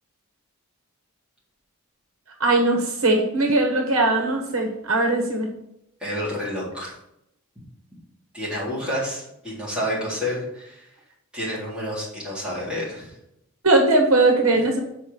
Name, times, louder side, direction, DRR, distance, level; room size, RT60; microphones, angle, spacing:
voice 1, 2.4-5.5 13.6-14.8, right 2 dB, 70° right, 2 dB, 1.5 m, -20 dB
voice 2, 6.0-6.9 8.3-10.9 11.3-13.1, equal, 5° right, -8 dB, 3.7 m, -29 dB
7.0 x 5.1 x 7.0 m, 0.81 s
head